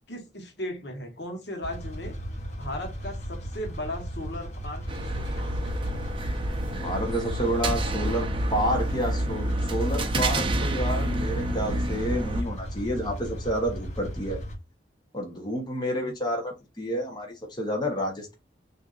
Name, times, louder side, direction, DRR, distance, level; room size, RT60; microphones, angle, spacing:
voice 1, 0.1-2.1 2.6-4.8 5.1-5.5 16.0-16.1, left 1 dB, 65° left, 1.2 m, -36 dB
sound 1, 1.6-14.6, equal, 40° left, 1.2 m, -36 dB
sound 2, 4.9-12.4, right 1 dB, 30° right, 0.6 m, -29 dB
voice 2, 6.7-14.4 15.1-18.4, equal, 25° left, 1.0 m, -30 dB
6.4 x 2.7 x 2.5 m
head